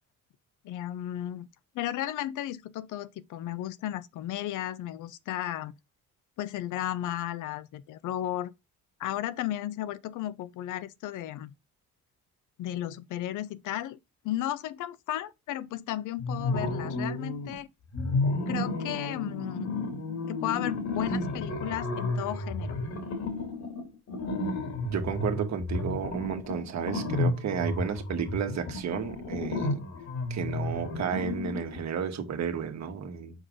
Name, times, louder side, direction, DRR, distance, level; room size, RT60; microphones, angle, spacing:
voice 1, 0.6-1.5 1.7-5.7 6.4-8.5 9.0-11.5 12.6-14.0 14.2-17.7 18.5-19.7 20.3-22.8, left 13 dB, 80° left, 0.6 m, -34 dB
sound 1, 16.2-17.5 17.9-31.8, left 2 dB, 65° left, 2.4 m, -32 dB
voice 2, 24.9-29.8 30.3-33.5, right 7 dB, 65° right, 1.6 m, -32 dB
6.4 x 4.9 x 3.7 m
cardioid pair, 90°, 30 cm